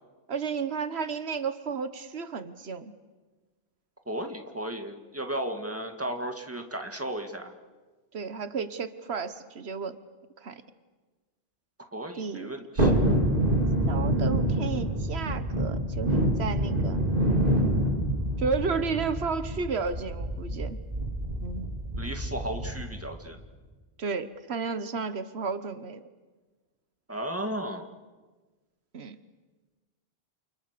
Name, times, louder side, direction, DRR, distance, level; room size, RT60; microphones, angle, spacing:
voice 1, 0.3-2.9 8.1-10.0 10.4-10.6 12.1-12.5 13.9-17.0 18.4-20.8 21.4-21.7 24.0-26.0 28.9-29.2, right 5 dB, 90° right, 11 dB, 1.4 m, -32 dB
voice 2, 4.1-7.5 11.9-12.9 22.0-23.4 27.1-27.9, right 1 dB, 15° right, 4 dB, 2.2 m, -34 dB
Thunderstorm, 12.8-23.0 23.3-23.4, right 1 dB, 60° right, 4.6 m, -27 dB
29.5 x 28.5 x 6.8 m, 1.3 s
omnidirectional pair, 1.0 m